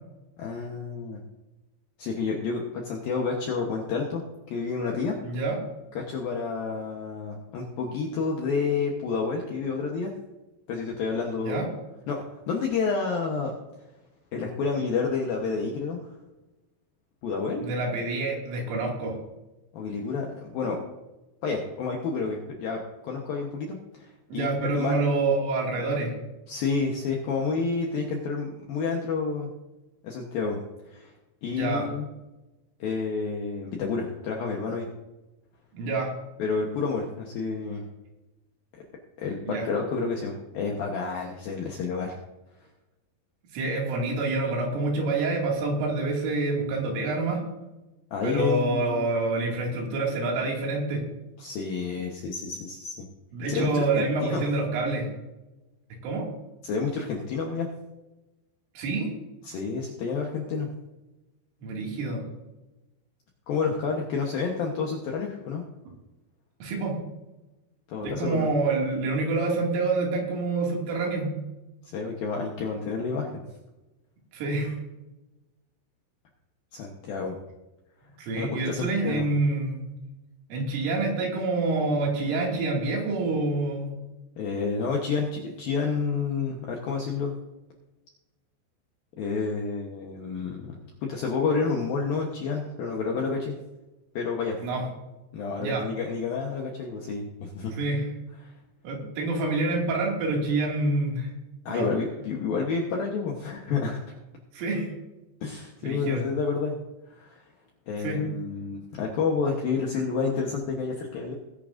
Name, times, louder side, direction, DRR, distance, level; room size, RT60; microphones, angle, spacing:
voice 1, 0.4-1.2 2.0-4.2 4.5-5.2 6.0-10.1 10.7-11.6 12.1-13.5 14.3-16.0 17.2-17.7 19.7-20.3 20.5-20.8 21.4-24.5 24.7-25.0 26.5-29.5 30.0-30.6 30.9-31.1 31.4-32.1 32.8-34.9 36.4-37.9 38.7-38.8 39.2-42.2 48.1-49.1 51.4-53.1 53.5-54.4 56.6-57.7 59.4-60.7 63.5-65.6 67.9-68.5 71.9-73.4 76.7-77.4 78.3-79.3 84.4-87.3 89.2-90.6 91.1-93.6 94.2-94.6 95.3-97.7 101.7-104.1 105.4-106.8 107.2-107.4 107.9-111.3, left 5 dB, 75° left, 0 dB, 2.2 m, -29 dB
voice 2, 5.2-5.6 11.5-11.7 17.6-19.1 24.3-26.2 31.5-31.9 35.7-36.1 39.5-39.7 43.5-47.4 48.2-51.0 53.3-55.1 56.0-56.2 58.8-59.1 61.6-62.2 66.6-67.0 68.0-71.3 74.3-74.8 78.2-80.0 80.5-83.9 94.6-94.8 95.6-95.9 97.7-98.1 98.8-101.3 101.7-101.9 104.5-104.9 105.8-106.2 108.0-108.2, right 3 dB, 75° right, -1 dB, 5.0 m, -27 dB
19.5 x 9.9 x 2.6 m, 1.0 s
omnidirectional pair, 5.8 m